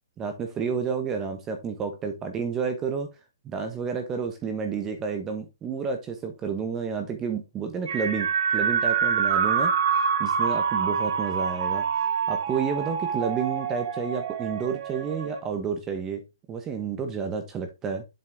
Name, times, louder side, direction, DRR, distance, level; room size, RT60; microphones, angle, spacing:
voice 1, 0.2-3.1 3.4-18.0, right 6 dB, 15° right, 1.0 m, -30 dB
sound 1, 7.9-15.4, right 6 dB, 60° right, 1.6 m, -26 dB
7.7 x 4.4 x 3.5 m
hypercardioid pair, 160°, 2 cm